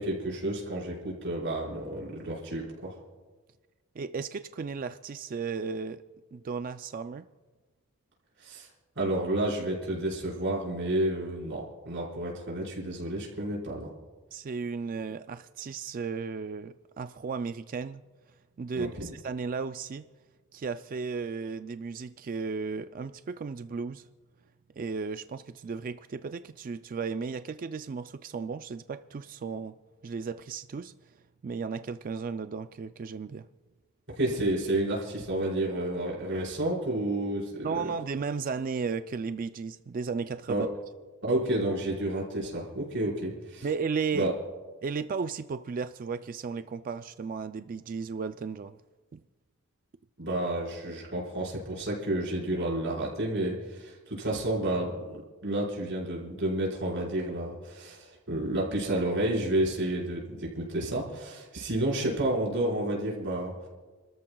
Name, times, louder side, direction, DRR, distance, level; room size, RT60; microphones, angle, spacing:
voice 1, 0.0-2.9 8.4-8.7 8.9-13.9 18.7-19.1 34.1-37.7 40.5-40.7 41.2-43.7 44.1-44.3 50.2-63.7, right 1 dB, 55° right, -5 dB, 5.0 m, -30 dB
voice 2, 4.0-6.0 6.3-7.3 14.3-18.0 18.6-20.0 20.5-24.0 24.8-29.7 30.0-30.9 31.4-33.5 37.6-40.7 43.6-44.3 44.8-48.8 49.1-49.2, right 5 dB, 40° right, 11 dB, 0.3 m, -34 dB
29.5 x 13.5 x 2.3 m, 1.4 s
head